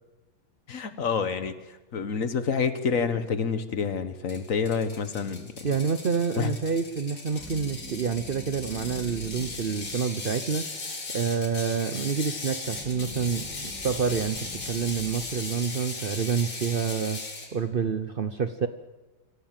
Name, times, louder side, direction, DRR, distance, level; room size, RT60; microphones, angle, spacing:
voice 1, 0.7-5.7 6.4-6.5, left 6 dB, 50° left, 11 dB, 1.4 m, -28 dB
Ratchet pawl, 4.3-17.5, left 3 dB, 65° left, 3.8 m, -38 dB
voice 2, 5.6-10.7 11.1-17.2 17.5-18.7, right 6 dB, 75° right, 10 dB, 0.5 m, -28 dB
sound 1, 7.3-10.6 12.6-15.9, left 1 dB, 55° right, 8.5 m, -44 dB
25.0 x 16.0 x 7.5 m, 1.1 s
omnidirectional pair, 2.1 m